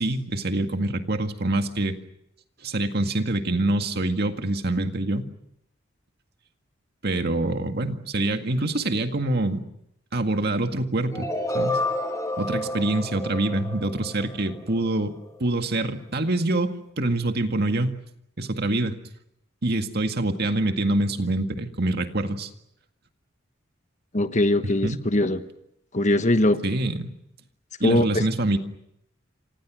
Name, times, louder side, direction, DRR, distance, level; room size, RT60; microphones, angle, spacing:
voice 1, 0.0-2.0 2.6-5.2 7.0-9.6 10.1-11.3 11.5-11.8 12.4-15.1 15.4-18.0 18.4-19.0 19.6-22.5 24.8-25.0 26.6-27.1 27.8-28.6, right 2 dB, 55° right, 6 dB, 2.0 m, -25 dB
sound 1, 11.1-15.0, left 1 dB, 15° left, 4.0 m, -30 dB
voice 2, 24.1-25.4 25.9-26.6 27.8-28.2, left 1 dB, 40° left, 10 dB, 1.3 m, -21 dB
29.0 x 26.0 x 6.3 m, 0.77 s
head